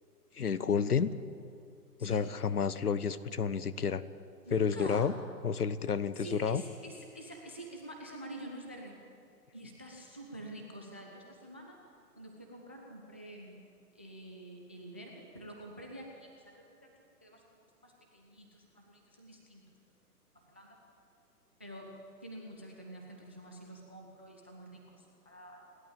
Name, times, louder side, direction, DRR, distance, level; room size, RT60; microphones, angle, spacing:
voice 1, 0.3-1.1 2.0-4.0 4.5-5.1 5.4-6.6, left 6 dB, 70° left, 16 dB, 1.2 m, -30 dB
voice 2, 4.4-5.1 6.2-9.0 9.5-11.8 12.1-13.6 13.9-16.9 17.2-19.7 20.3-20.8 21.6-21.9 22.2-25.6, right 1 dB, 10° right, 2 dB, 0.4 m, -47 dB
29.0 x 11.5 x 8.8 m, 2.5 s
figure-of-eight pair, 120°, 48 cm